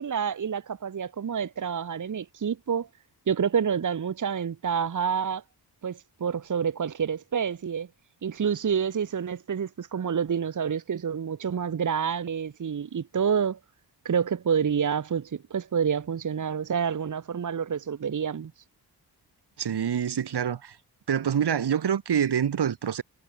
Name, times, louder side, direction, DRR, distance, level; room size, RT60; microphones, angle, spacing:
voice 1, 0.0-2.9 3.3-5.4 5.8-7.9 8.2-13.6 14.0-18.5, right 7 dB, 45° right, 1.2 m, -28 dB
voice 2, 19.6-20.8 21.1-23.0, right 8 dB, 70° right, 2.1 m, -26 dB
wide cardioid pair, 150°, 41 cm